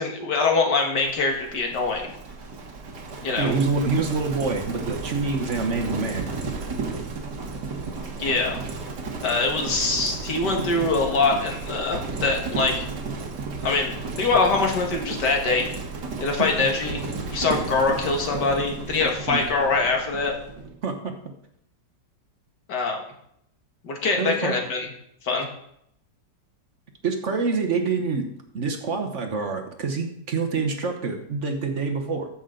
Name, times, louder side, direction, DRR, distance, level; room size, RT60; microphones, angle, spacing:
voice 1, 0.0-2.1 3.2-3.5 8.2-8.6 9.2-12.9 13.6-15.7 16.2-17.0 17.3-20.3 22.7-23.0 23.8-24.9 25.2-25.5, left 3 dB, 70° left, 2 dB, 2.2 m, -23 dB
Livestock farm animals working animals, 1.1-20.7, right 4 dB, 65° right, 2.0 m, -33 dB
voice 2, 3.4-6.3 10.6-10.9 16.3-16.7 19.3-19.5 20.8-21.1 24.2-24.5 27.0-28.3 28.5-32.3, right 4 dB, 45° right, 4 dB, 1.2 m, -26 dB
14.5 x 6.1 x 3.8 m, 0.73 s
omnidirectional pair, 1.9 m